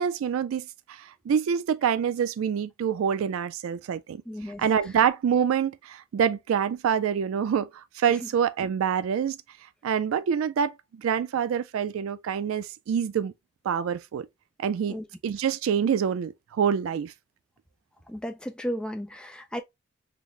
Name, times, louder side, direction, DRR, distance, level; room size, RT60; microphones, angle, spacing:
voice 1, 0.0-4.2 4.6-9.4 9.8-13.3 13.6-14.3 14.6-15.0 15.2-17.1, right 8 dB, 90° right, 0.3 m, -26 dB
voice 2, 4.3-4.6 14.9-15.0 18.1-19.6, equal, 5° left, 0.3 m, -34 dB
4.0 x 2.0 x 3.1 m
head